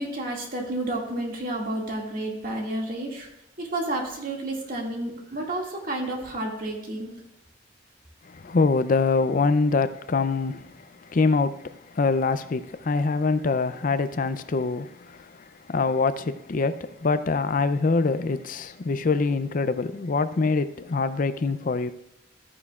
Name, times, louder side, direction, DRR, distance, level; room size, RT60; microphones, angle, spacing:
voice 1, 0.0-3.3 3.6-7.2, right 1 dB, 50° right, 2.1 m, -31 dB
voice 2, 8.3-15.3 15.7-21.9, left 4 dB, 45° left, 0.5 m, -24 dB
13.5 x 9.7 x 2.4 m
head